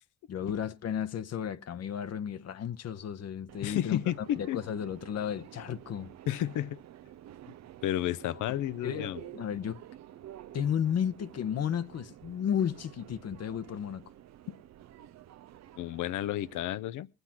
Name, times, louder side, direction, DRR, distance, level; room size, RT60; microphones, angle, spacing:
voice 1, 0.3-4.0 4.4-6.1 8.4-8.5 8.8-9.8 10.5-14.0, left 8 dB, 55° left, 0.9 m, -33 dB
Subway metro underground, 3.5-16.6, right 12 dB, 60° right, 0.6 m, -50 dB
voice 2, 3.6-4.6 6.3-6.8 7.8-9.2 15.8-17.1, left 13 dB, 80° left, 0.7 m, -31 dB
20.0 x 8.1 x 5.9 m
cardioid pair, 90°, 30 cm